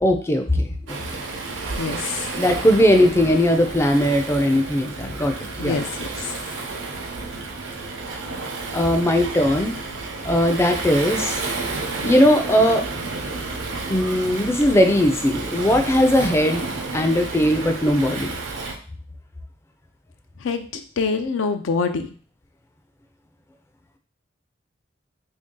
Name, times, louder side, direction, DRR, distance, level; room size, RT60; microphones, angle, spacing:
voice 1, 0.0-1.0 2.3-5.3 5.6-5.8 8.7-9.8 10.2-11.4 12.0-12.8 13.9-16.6 16.9-18.4, equal, 15° left, 5 dB, 0.4 m, -19 dB
Waves surf, 0.9-18.7, right 3 dB, 85° right, 0.7 m, -31 dB
voice 2, 1.8-2.3 5.6-5.9 20.4-22.1, left 4 dB, 85° left, 7 dB, 0.4 m, -25 dB
3.1 x 2.7 x 3.6 m, 0.41 s
head